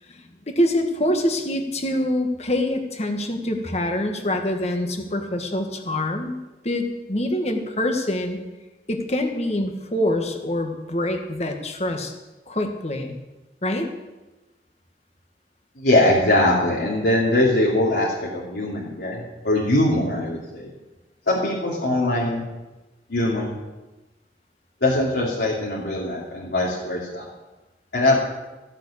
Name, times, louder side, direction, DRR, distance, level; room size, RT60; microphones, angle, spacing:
voice 1, 0.1-6.4 6.6-8.4 8.9-12.1 12.5-13.2 13.6-13.9, left 1 dB, 35° left, 4 dB, 1.6 m, -25 dB
voice 2, 15.8-20.7 21.3-22.4 23.1-23.5 24.8-27.2 27.9-28.2, left 1 dB, 70° left, -6 dB, 2.8 m, -21 dB
14.5 x 7.7 x 8.5 m, 1.1 s
head